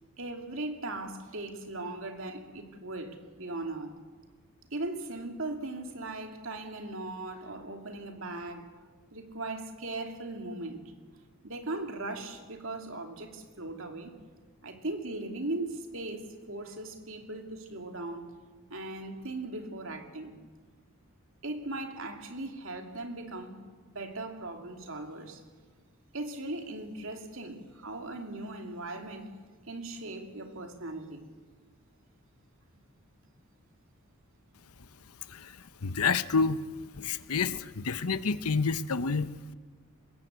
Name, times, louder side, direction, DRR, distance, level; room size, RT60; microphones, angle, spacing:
voice 1, 0.2-3.9 4.7-8.7 9.1-10.9 11.4-14.2 14.6-18.3 18.7-20.4 21.4-25.4 26.1-29.3 29.7-31.3, right 2 dB, 60° right, 2.8 m, -38 dB
voice 2, 35.3-36.6 36.9-39.5, left 4 dB, 80° left, 0.9 m, -29 dB
25.0 x 20.5 x 8.1 m
head